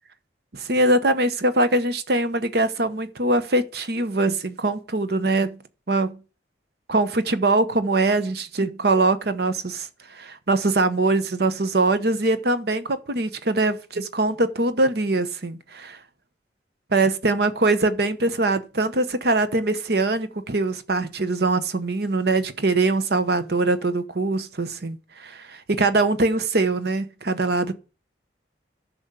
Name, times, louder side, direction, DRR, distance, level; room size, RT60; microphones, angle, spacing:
voice 1, 0.5-5.6 5.9-6.2 6.9-16.0 16.9-27.7, right 2 dB, 60° right, 1.0 m, -22 dB
10.5 x 6.1 x 6.8 m
head